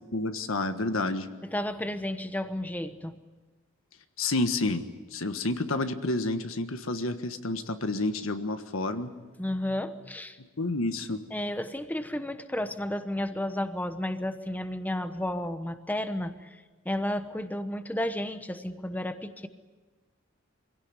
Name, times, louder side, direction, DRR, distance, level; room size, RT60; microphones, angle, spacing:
voice 1, 0.1-1.3 4.2-4.8 5.1-9.1 10.4-11.2, left 2 dB, 80° left, 8 dB, 1.5 m, -29 dB
voice 2, 1.5-3.1 9.4-10.4 11.3-16.6 16.8-19.5, left 1 dB, 10° left, 9 dB, 1.0 m, -32 dB
25.0 x 17.0 x 9.7 m, 1.3 s
head